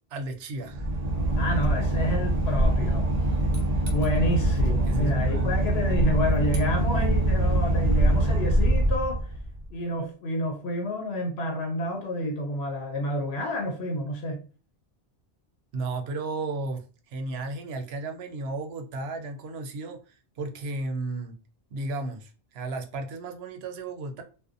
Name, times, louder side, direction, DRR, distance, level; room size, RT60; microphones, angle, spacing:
voice 1, 0.1-1.0 4.9-5.6 15.7-21.3 21.7-24.2, right 3 dB, 80° right, 0.8 m, -34 dB
Boat Water vehicle / Engine, 0.7-9.6, right 1 dB, 50° right, 0.5 m, -24 dB
voice 2, 1.4-3.1 3.9-9.3 9.7-14.4, equal, 85° left, 0.9 m, -29 dB
2.6 x 2.1 x 2.4 m
omnidirectional pair, 1.0 m